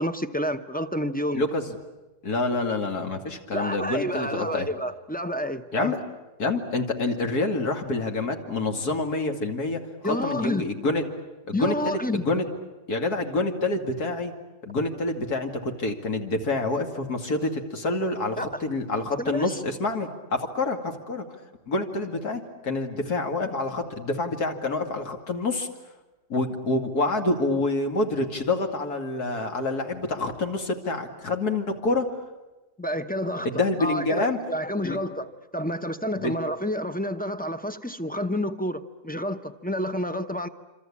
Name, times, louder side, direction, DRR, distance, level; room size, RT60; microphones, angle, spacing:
voice 1, 0.0-1.4 3.5-5.9 10.0-10.6 11.5-12.2 18.4-18.6 19.2-19.6 32.8-33.5 33.8-40.5, equal, 10° left, 9 dB, 0.5 m, -29 dB
voice 2, 1.3-1.8 2.2-4.7 5.7-6.0 6.4-11.0 11.5-12.5 12.9-14.3 14.6-21.2 21.7-25.7 26.3-32.1 33.4-34.4 34.8-35.0 36.2-36.3, left 2 dB, 70° left, 4 dB, 2.8 m, -27 dB
26.5 x 26.5 x 8.6 m, 1.1 s
omnidirectional pair, 1.7 m